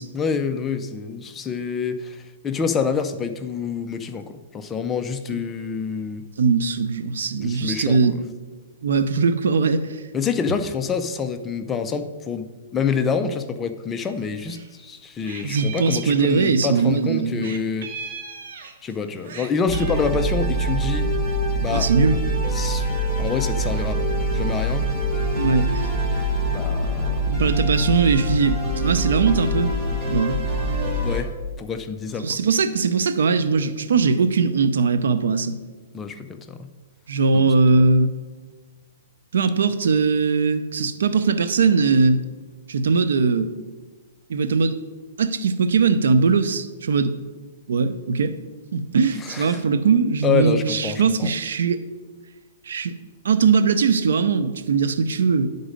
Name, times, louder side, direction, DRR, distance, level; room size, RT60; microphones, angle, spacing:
voice 1, 0.1-6.2 7.4-8.2 10.1-12.5 12.7-18.0 18.8-21.1 21.6-21.9 22.5-22.9 23.2-24.0 24.3-24.9 26.5-27.4 31.0-31.3 31.6-32.4 35.9-36.7 37.3-37.8 49.2-49.6 50.2-51.3, left 5 dB, 15° left, 8 dB, 0.4 m, -27 dB
voice 2, 6.4-8.2 8.8-10.0 15.4-17.6 21.7-22.2 25.3-25.9 27.3-29.8 30.1-30.4 32.2-35.6 37.1-38.1 39.3-42.2 42.7-43.5 44.3-44.8 45.2-47.2 47.7-48.4 48.7-51.9 52.7-53.0 53.2-55.5, right 5 dB, 85° right, 11 dB, 0.6 m, -20 dB
Meow, 14.1-14.7 14.9-16.9 17.4-18.9 19.2-20.0, right 5 dB, 60° right, 0.9 m, -38 dB
sound 1, 19.7-31.2, right 1 dB, 15° right, 1.0 m, -24 dB
10.0 x 4.0 x 5.1 m, 1.3 s
hypercardioid pair, 160°, 0 cm